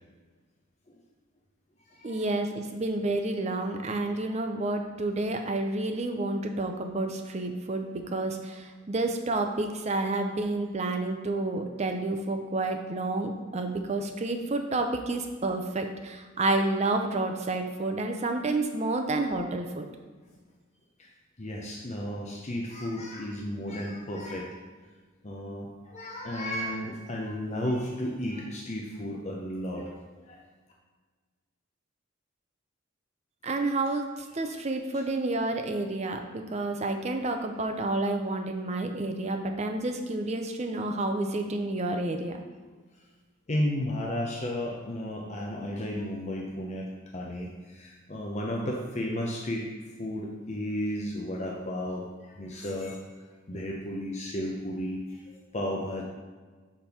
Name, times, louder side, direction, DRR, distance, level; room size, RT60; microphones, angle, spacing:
voice 1, 2.0-19.9 33.4-42.4, right 2 dB, 30° right, 5 dB, 0.5 m, -30 dB
voice 2, 21.4-24.6 25.2-29.9 30.3-30.4 43.5-49.6 50.0-53.0 53.5-55.0 55.3-56.0, left 1 dB, 35° left, -1 dB, 0.7 m, -33 dB
5.2 x 4.3 x 5.8 m, 1.4 s
head